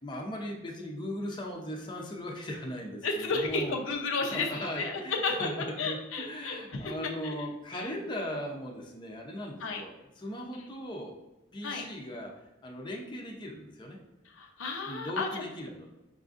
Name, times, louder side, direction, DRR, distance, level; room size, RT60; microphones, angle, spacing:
voice 1, 0.0-3.8 4.3-5.5 5.8-11.1 11.5-12.3 12.6-14.0 14.9-15.9, equal, 25° left, 0 dB, 0.5 m, -38 dB
voice 2, 3.0-6.9 7.2-7.4 7.7-7.9 9.6-9.8 10.6-10.7 11.6-11.9 14.3-15.4, left 3 dB, 90° left, 1 dB, 0.6 m, -33 dB
5.5 x 2.5 x 2.4 m, 0.98 s
head